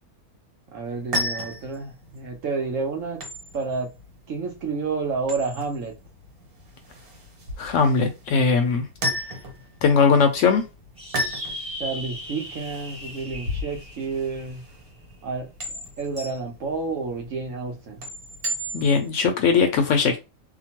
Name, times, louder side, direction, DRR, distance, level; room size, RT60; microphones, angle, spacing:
voice 1, 0.7-3.2 3.5-3.9 4.3-5.9 11.8-14.6 15.2-15.5 16.0-18.0, right 4 dB, 65° right, 1.1 m, -30 dB
sound 1, 0.9-19.1, left 1 dB, 90° right, 1.5 m, -35 dB
voice 2, 7.6-8.9 9.8-10.6 18.7-20.2, left 5 dB, 70° left, 0.8 m, -19 dB
sound 2, 11.0-15.7, equal, 10° right, 0.4 m, -38 dB
2.8 x 2.2 x 2.8 m
omnidirectional pair, 1.5 m